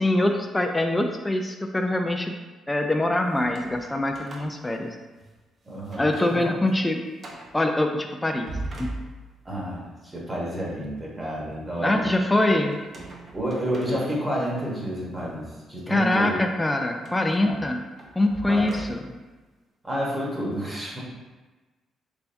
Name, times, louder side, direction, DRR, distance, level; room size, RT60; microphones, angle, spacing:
voice 1, 0.0-2.4 2.7-5.0 6.0-7.0 7.5-8.5 8.8-8.9 11.8-12.8 15.9-17.8 18.2-19.1, left 1 dB, 15° left, 3 dB, 0.3 m, -24 dB
sound 1, 3.3-5.4 5.8-6.4 6.7-6.8 7.2-7.6 8.2-9.6 12.7-14.5 15.1-15.3 17.0-19.3, right 2 dB, 45° right, 0.6 m, -41 dB
voice 2, 5.7-6.5 9.4-12.0 13.3-16.3 17.4-17.5 18.5-18.8 19.8-21.0, equal, 20° right, -4 dB, 1.0 m, -30 dB
3.4 x 3.4 x 2.6 m, 1.2 s
cardioid pair, 90°, 0 cm